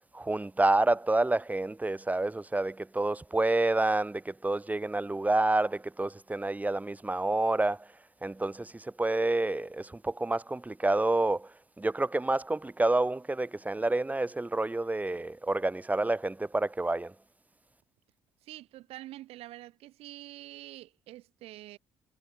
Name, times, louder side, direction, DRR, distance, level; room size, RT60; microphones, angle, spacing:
voice 1, 0.1-7.8 8.2-8.7 9.0-11.4 11.8-17.1, right 2 dB, 15° right, 1.8 m, -28 dB
voice 2, 18.4-21.8, right 15 dB, 65° right, 4.8 m, -46 dB
hypercardioid pair, 50°, 11 cm